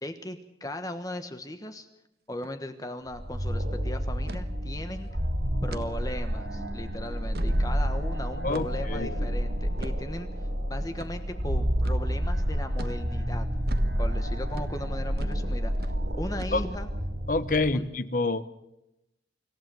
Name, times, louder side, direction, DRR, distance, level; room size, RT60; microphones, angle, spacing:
voice 1, 0.0-1.9 2.3-5.1 5.6-13.5 14.0-16.9 17.7-17.8, left 1 dB, 20° left, 8 dB, 1.2 m, -38 dB
sound 1, 2.3-2.6 2.9-3.0 3.3-3.6 4.3-4.5 5.0-5.1 5.7-5.9 6.4-6.5 7.1-7.6 8.5-8.9 9.8-10.0 11.0-11.1 11.8-12.0 12.8-13.0 13.7-13.9 14.5-14.7 15.2-15.4 15.7-16.0 16.4-16.9, right 2 dB, 55° right, 1.4 m, -43 dB
sound 2, 3.1-17.7, equal, 80° right, 5.0 m, -29 dB
voice 2, 8.4-9.4 16.5-16.6 17.3-18.4, left 3 dB, 45° left, 14 dB, 1.1 m, -27 dB
26.0 x 15.5 x 7.7 m, 0.90 s
head